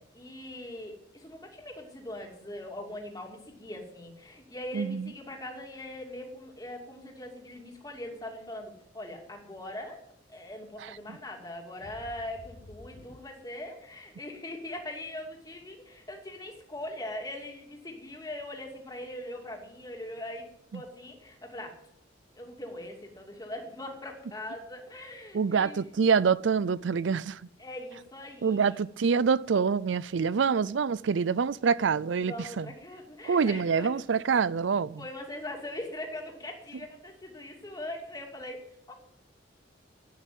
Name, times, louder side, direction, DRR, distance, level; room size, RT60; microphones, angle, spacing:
voice 1, 0.0-10.0 10.3-20.5 20.7-21.8 22.3-25.8 27.6-28.8 32.1-33.9 35.0-38.9, left 1 dB, 20° left, 2.7 m, -41 dB
voice 2, 4.7-5.1 10.8-10.9 20.7-20.8 25.3-27.4 28.4-32.7 33.2-35.0, right 6 dB, 75° right, 0.5 m, -26 dB
sound 1, 11.5-13.2, left 2 dB, 40° left, 0.8 m, -50 dB
12.0 x 9.1 x 9.2 m
head